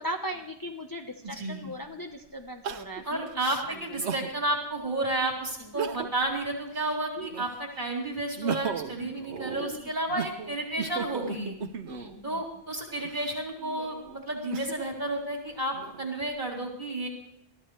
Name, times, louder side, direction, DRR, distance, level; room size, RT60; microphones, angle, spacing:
voice 1, 0.0-3.4 3.7-3.8 5.6-5.7 7.2-7.3 9.5-9.9 11.8-12.4, equal, 20° left, 2 dB, 1.1 m, -38 dB
voice 2, 1.2-1.7 3.0-11.6 12.2-17.1, right 2 dB, 45° right, 0 dB, 4.0 m, -32 dB
Crying sobbing, 1.3-1.4 2.6-4.3 4.9-5.0 5.6-6.3 6.7-7.7 8.2-12.2 12.9-15.0 15.5-16.3, right 6 dB, 90° right, 1.1 m, -36 dB
21.5 x 14.0 x 3.3 m, 0.79 s
omnidirectional pair, 1.1 m